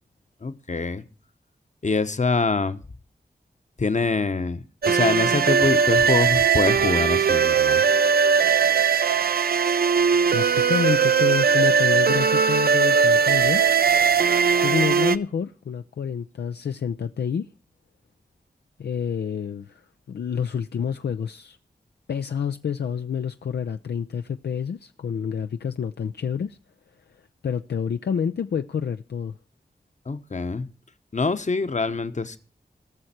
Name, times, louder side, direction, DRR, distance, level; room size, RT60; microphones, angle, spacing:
voice 1, 0.4-1.0 1.8-2.8 3.8-7.8 30.1-30.7 31.1-32.4, left 4 dB, 45° left, 1.0 m, -25 dB
sound 1, 4.8-15.2, right 6 dB, 65° right, 0.5 m, -19 dB
voice 2, 10.3-13.6 14.6-17.5 18.8-19.8 20.1-21.6 22.1-26.6 27.4-29.4, left 7 dB, 75° left, 0.5 m, -28 dB
18.5 x 6.5 x 4.3 m
cardioid pair, 40°, 17 cm